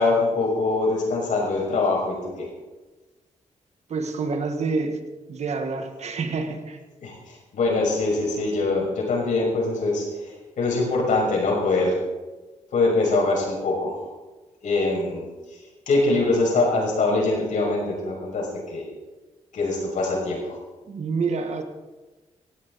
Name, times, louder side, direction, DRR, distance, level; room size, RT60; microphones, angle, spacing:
voice 1, 0.0-2.5 7.0-7.1 7.5-10.1 10.6-12.0 12.7-14.0 14.6-15.3 15.9-18.9 19.5-20.6, left 3 dB, 75° left, -2 dB, 6.2 m, -23 dB
voice 2, 3.9-5.0 5.3-6.8 20.9-21.6, right 4 dB, 60° right, 6 dB, 1.7 m, -27 dB
18.0 x 16.0 x 4.1 m, 1.2 s
wide cardioid pair, 135°, 13 cm